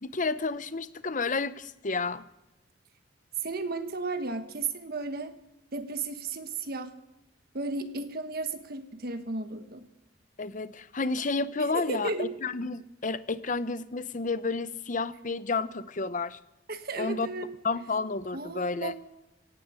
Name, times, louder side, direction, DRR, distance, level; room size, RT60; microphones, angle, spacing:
voice 1, 0.0-2.2 10.4-16.4 17.0-17.3 17.6-18.9, left 3 dB, 40° left, 14 dB, 0.7 m, -31 dB
voice 2, 3.4-5.3 5.7-6.9 7.5-9.9 11.6-12.3 16.7-17.5 18.3-19.0, right 3 dB, 50° right, 8 dB, 1.3 m, -34 dB
17.0 x 10.0 x 8.3 m, 0.97 s
head